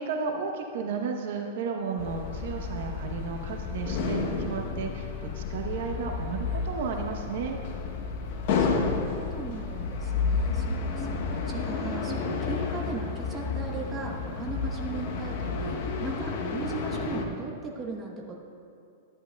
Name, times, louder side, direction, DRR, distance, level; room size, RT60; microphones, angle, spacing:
voice 1, 0.0-7.6, right 5 dB, 60° right, 3 dB, 0.8 m, -33 dB
sound 1, 2.0-17.2, left 4 dB, 50° left, 0.8 m, -31 dB
voice 2, 8.5-18.4, right 4 dB, 20° right, -1 dB, 1.0 m, -39 dB
12.5 x 10.0 x 2.3 m, 2.5 s
supercardioid pair, 150°, 0 cm